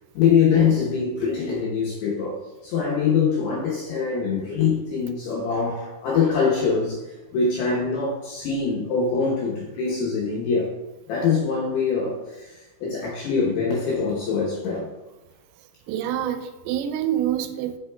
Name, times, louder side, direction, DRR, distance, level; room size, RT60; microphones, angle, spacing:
voice 1, 0.1-2.4 2.6-10.7 11.1-14.9, left 5 dB, 75° left, -4 dB, 2.5 m, -23 dB
voice 2, 15.9-17.8, right 11 dB, 90° right, 7 dB, 3.2 m, -26 dB
8.6 x 5.8 x 2.2 m, 1.1 s
omnidirectional pair, 5.9 m